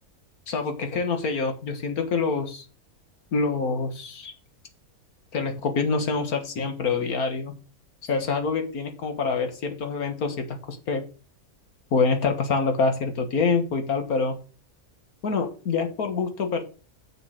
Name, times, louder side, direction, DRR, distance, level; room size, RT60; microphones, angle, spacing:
voice 1, 0.5-2.6 3.3-4.3 5.3-7.6 8.1-11.0 11.9-14.4 15.2-16.6, left 4 dB, 80° left, 7 dB, 1.9 m, -26 dB
7.0 x 6.8 x 6.5 m, 0.36 s
omnidirectional pair, 1.6 m